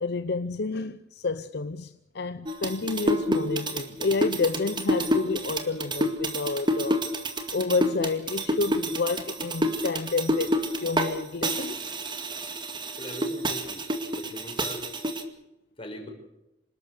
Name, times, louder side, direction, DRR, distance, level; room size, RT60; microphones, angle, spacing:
voice 1, 0.0-7.0 7.5-11.9, left 3 dB, 65° left, 0.7 m, -29 dB
sound 1, 2.5-11.1 11.4-15.2, equal, 25° right, 2.1 m, -28 dB
voice 2, 13.0-13.8 14.1-14.9 15.8-16.1, left 1 dB, 30° left, 5.7 m, -40 dB
27.0 x 12.5 x 8.0 m
head